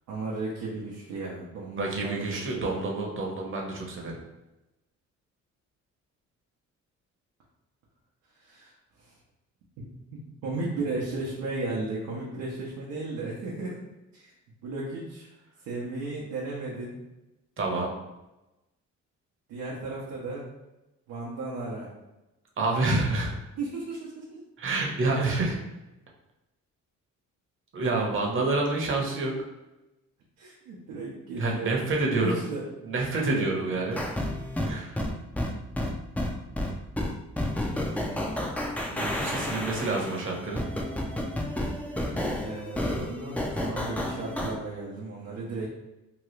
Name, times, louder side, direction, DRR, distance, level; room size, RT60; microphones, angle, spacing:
voice 1, 0.1-2.8 8.4-8.7 9.0-9.1 9.8-9.9 10.4-13.8 14.2-14.3 14.6-15.3 15.7-16.9 19.5-20.5 21.1-21.9 23.6-24.2 30.4-31.8 32.2-32.6 33.3-33.7 42.4-45.7, right 3 dB, 90° right, -5 dB, 0.7 m, -34 dB
voice 2, 1.8-4.1 17.6-17.9 22.6-23.3 24.6-25.6 27.7-29.4 31.3-32.3 32.8-34.0 34.6-35.0 38.9-40.6, right 2 dB, 40° right, 0 dB, 0.9 m, -28 dB
sound 1, 33.9-44.5, left 1 dB, 5° left, 0.4 m, -31 dB
2.9 x 2.3 x 3.1 m, 0.98 s
cardioid pair, 90°, 30 cm